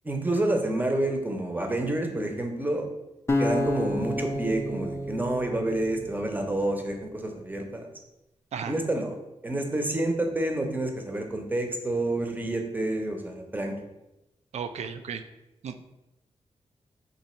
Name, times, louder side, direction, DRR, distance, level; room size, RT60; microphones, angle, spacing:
voice 1, 0.0-2.9 3.4-7.9 8.7-9.1 9.4-13.8, right 1 dB, 15° right, 3 dB, 0.7 m, -28 dB
sound 1, 3.3-6.5, left 1 dB, 25° left, 0.4 m, -30 dB
voice 2, 14.5-15.2 15.6-15.8, right 7 dB, 75° right, 9 dB, 0.4 m, -34 dB
3.9 x 2.7 x 4.3 m, 0.95 s
cardioid pair, 85°, 12 cm